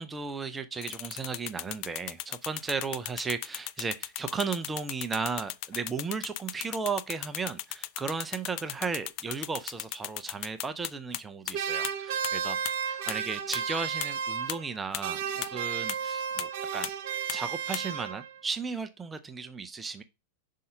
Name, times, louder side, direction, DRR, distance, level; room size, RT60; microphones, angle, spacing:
voice 1, 0.0-12.6 12.9-15.2 15.5-16.9 17.3-20.0, right 5 dB, 15° right, 0.6 m, -35 dB
sound 1, 0.8-11.2 11.5-11.6 11.8-11.9 12.2-12.3 12.7-12.8 13.1-13.2 13.5-13.6 14.0-14.1 14.5-14.6 14.9-15.0 15.4-15.5 15.9-16.0 16.4-16.5 16.8-16.9 17.3-17.4 17.7-17.8, left 15 dB, 45° left, 0.4 m, -35 dB
sound 2, 11.5-14.8 15.0-18.4, right 7 dB, 50° right, 0.8 m, -33 dB
5.5 x 3.7 x 5.6 m
figure-of-eight pair, 90°, 0 cm